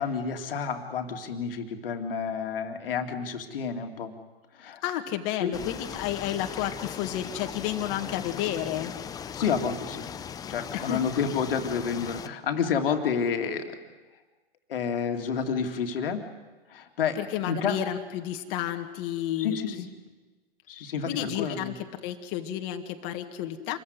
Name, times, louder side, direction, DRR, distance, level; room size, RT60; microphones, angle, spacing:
voice 1, 0.0-4.1 4.5-4.8 5.4-5.6 9.3-10.1 10.5-13.8 14.7-16.2 16.7-17.2 17.4-17.8 19.4-19.9 20.7-21.7, left 6 dB, 60° left, 5 dB, 2.3 m, -29 dB
voice 2, 4.8-8.9 10.7-11.0 17.2-19.8 21.1-23.8, left 11 dB, 35° left, 5 dB, 2.0 m, -31 dB
sound 1, 5.5-12.3, left 8 dB, 10° left, 0.6 m, -38 dB
26.5 x 15.0 x 9.6 m, 1.3 s
hypercardioid pair, 120°, 31 cm